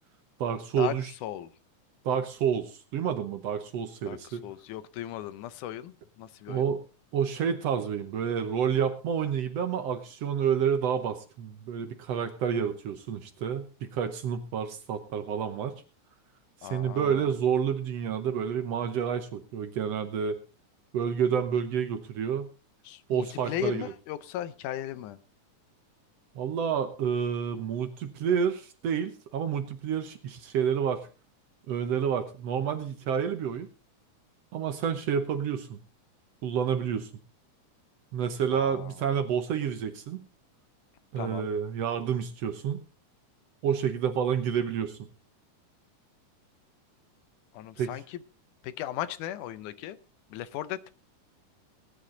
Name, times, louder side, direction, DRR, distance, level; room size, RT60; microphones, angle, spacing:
voice 1, 0.4-1.1 2.1-4.4 6.5-6.8 7.1-15.8 16.7-20.4 20.9-22.5 23.1-23.9 26.4-31.0 31.7-33.7 34.5-35.8 36.4-37.1 38.1-40.2 41.1-42.8 43.6-45.1 47.8-48.0, right 7 dB, 65° right, 8 dB, 1.9 m, -29 dB
voice 2, 4.1-6.6 16.6-17.3 22.9-25.2 38.5-38.9 41.2-41.5 47.5-48.2 48.6-50.0 50.3-50.9, left 12 dB, 85° left, 15 dB, 2.3 m, -37 dB
18.5 x 10.0 x 3.8 m, 0.33 s
omnidirectional pair, 3.5 m